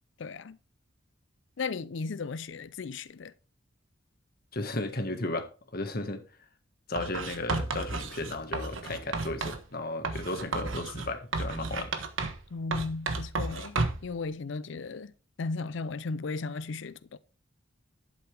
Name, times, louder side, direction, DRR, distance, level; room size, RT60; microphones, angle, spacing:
voice 1, 0.2-0.6 1.6-3.3 12.5-15.1 15.4-17.2, left 4 dB, 65° left, 0.5 m, -35 dB
voice 2, 4.5-6.2 6.9-11.9, left 2 dB, 50° left, 1.6 m, -34 dB
Writing, 7.0-9.6 10.0-12.5 12.7-14.1, right 3 dB, 80° right, 1.3 m, -33 dB
11.5 x 7.2 x 3.4 m
head